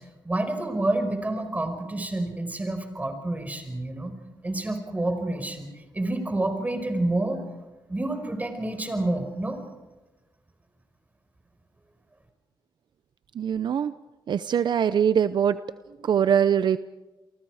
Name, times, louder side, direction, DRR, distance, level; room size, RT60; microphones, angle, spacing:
voice 1, 0.2-4.1 4.4-5.7 5.9-7.4 7.9-9.6, right 2 dB, 20° right, 7 dB, 5.1 m, -28 dB
voice 2, 13.3-13.9 14.3-15.6 16.0-16.8, right 8 dB, 60° right, 13 dB, 0.7 m, -22 dB
30.0 x 23.5 x 4.9 m, 1.1 s
cardioid pair, 90°, 8 cm